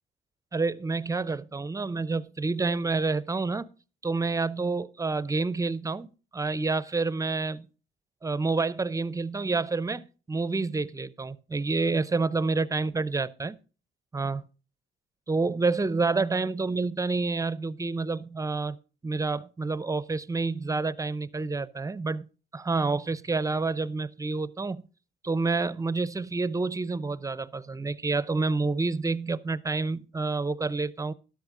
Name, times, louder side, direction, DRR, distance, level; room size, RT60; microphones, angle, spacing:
voice 1, 0.5-3.7 4.0-6.1 6.3-7.7 8.2-13.6 14.1-14.4 15.3-18.8 19.0-22.2 22.5-24.8 25.2-31.1, right 3 dB, 15° right, 0.5 m, -28 dB
13.0 x 11.5 x 2.5 m
cardioid pair, 90°, 20 cm